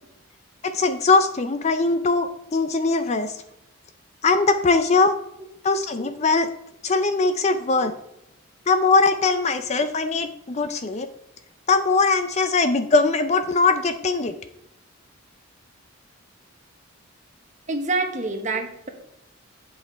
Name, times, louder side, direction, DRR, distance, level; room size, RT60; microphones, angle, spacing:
voice 1, 0.6-3.4 4.2-5.2 5.6-6.5 6.8-7.9 8.7-11.1 11.7-14.3, left 3 dB, 30° left, 9 dB, 0.4 m, -21 dB
voice 2, 7.3-7.7 9.3-9.4 17.7-18.9, right 3 dB, 35° right, 4 dB, 1.2 m, -28 dB
8.6 x 5.8 x 4.4 m, 0.81 s
head